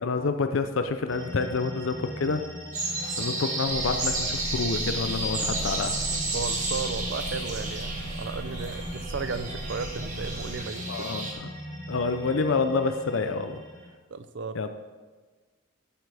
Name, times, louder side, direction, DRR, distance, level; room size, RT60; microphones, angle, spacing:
voice 1, 0.0-2.4 3.2-6.0 10.9-11.5 11.9-13.6 14.5-14.7, left 4 dB, 70° left, 8 dB, 0.5 m, -28 dB
sound 1, 1.1-13.9, left 1 dB, 15° left, 3.5 m, -40 dB
sound 2, 2.7-11.3, right 2 dB, 40° right, 1.7 m, -32 dB
sound 3, 3.7-10.5, right 1 dB, 80° right, 1.3 m, -38 dB
voice 2, 6.3-11.1 14.1-14.6, right 4 dB, 60° right, 12 dB, 0.5 m, -35 dB
13.0 x 7.8 x 3.4 m, 1.4 s
head